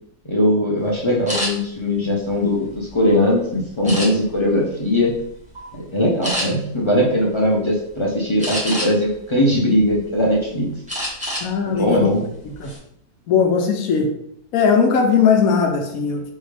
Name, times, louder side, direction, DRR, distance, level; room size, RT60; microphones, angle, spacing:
voice 1, 0.2-5.1 5.7-10.7 11.7-12.3, left 1 dB, 45° left, -4 dB, 0.3 m, -20 dB
sound 1, 1.3-1.5 2.1-3.1 3.8-4.4 5.0-5.2 5.5-5.7 6.2-6.5 8.4-9.1 9.6-10.3 10.9-11.5 11.8-12.0 12.4-12.8, equal, 5° right, 0.8 m, -27 dB
voice 2, 11.4-12.1 12.6-12.7 13.3-14.1 14.5-16.3, left 6 dB, 70° left, 3 dB, 1.0 m, -18 dB
3.5 x 3.3 x 3.3 m, 0.72 s
omnidirectional pair, 1.7 m